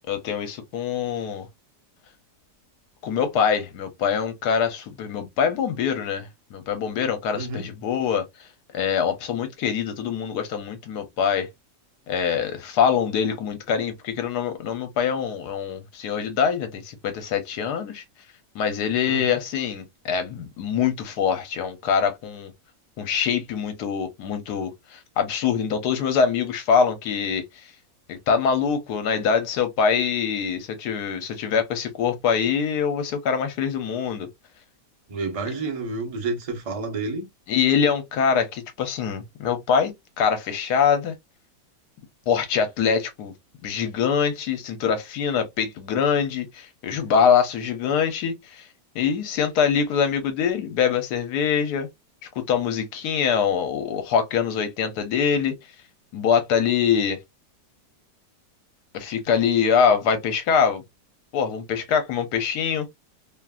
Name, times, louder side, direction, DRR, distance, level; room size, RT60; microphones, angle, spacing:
voice 1, 0.1-1.5 3.0-8.2 8.7-11.5 12.1-18.0 18.5-22.5 23.0-27.4 28.1-34.3 37.5-41.1 42.3-43.3 43.6-48.6 48.9-51.9 52.4-55.5 56.1-57.2 58.9-60.8 61.3-62.9, left 7 dB, 70° left, 1.3 m, -24 dB
voice 2, 7.3-7.7 19.1-19.4 35.1-37.3, right 3 dB, 30° right, 0.7 m, -30 dB
3.0 x 2.5 x 2.3 m
omnidirectional pair, 1.8 m